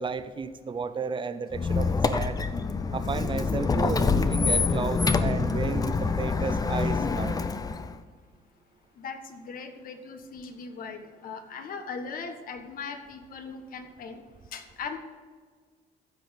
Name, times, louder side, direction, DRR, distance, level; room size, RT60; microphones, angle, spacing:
voice 1, 0.0-2.5 2.9-7.4, right 5 dB, 30° right, 11 dB, 0.8 m, -33 dB
Squeak, 1.5-7.9, left 4 dB, 20° left, 0.6 m, -26 dB
voice 2, 9.0-14.2 14.5-15.0, left 5 dB, 55° left, 7 dB, 1.4 m, -39 dB
15.0 x 6.2 x 5.2 m, 1.6 s
cardioid pair, 110°, 17 cm